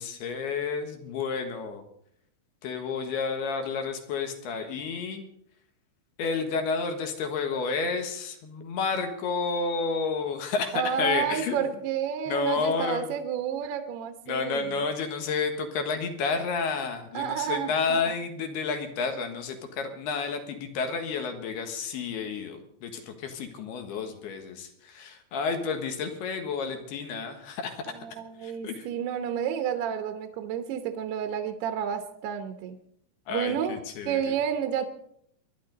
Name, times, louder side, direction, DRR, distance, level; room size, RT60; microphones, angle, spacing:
voice 1, 0.0-1.8 2.6-5.2 6.2-11.7 12.3-13.1 14.3-28.9 33.3-34.4, left 4 dB, 65° left, 6 dB, 3.1 m, -31 dB
voice 2, 10.7-14.8 17.1-18.1 28.0-32.8 33.3-33.8 34.1-34.9, right 8 dB, 70° right, 7 dB, 2.6 m, -30 dB
25.5 x 11.5 x 4.1 m, 0.69 s
omnidirectional pair, 5.6 m